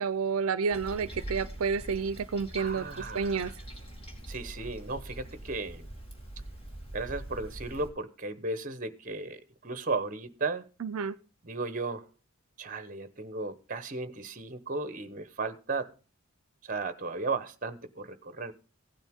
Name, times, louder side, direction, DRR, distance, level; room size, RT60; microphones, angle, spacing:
voice 1, 0.0-2.9 3.1-3.5 10.8-11.2, right 5 dB, 85° right, 16 dB, 0.5 m, -30 dB
Toilet flush, 0.7-7.9, right 1 dB, 25° left, 2.6 m, -43 dB
voice 2, 2.6-3.5 4.3-5.9 6.9-10.6 11.4-12.0 12.6-15.9 16.6-18.5, right 3 dB, 35° right, 13 dB, 0.9 m, -35 dB
16.0 x 9.1 x 3.6 m, 0.34 s
head